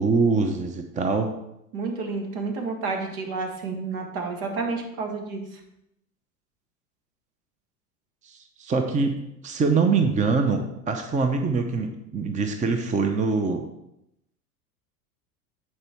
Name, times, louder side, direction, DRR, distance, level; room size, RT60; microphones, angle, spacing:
voice 1, 0.0-1.3 8.2-9.2 9.4-13.7, right 4 dB, 15° right, 6 dB, 0.7 m, -24 dB
voice 2, 1.7-5.6, right 4 dB, 65° right, 3 dB, 2.0 m, -30 dB
9.6 x 4.6 x 4.5 m, 0.84 s
hypercardioid pair, 90°, 46 cm